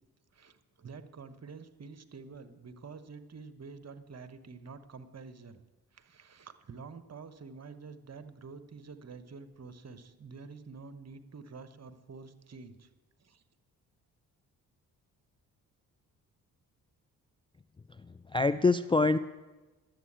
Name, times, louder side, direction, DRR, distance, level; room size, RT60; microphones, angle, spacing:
voice 1, 0.3-5.6 5.9-12.9 13.2-13.4, right 4 dB, 40° right, 11 dB, 1.1 m, -48 dB
voice 2, 18.0-19.2, left 3 dB, 15° left, 14 dB, 0.3 m, -26 dB
11.0 x 8.1 x 8.7 m, 1.2 s
supercardioid pair, 50°, 41 cm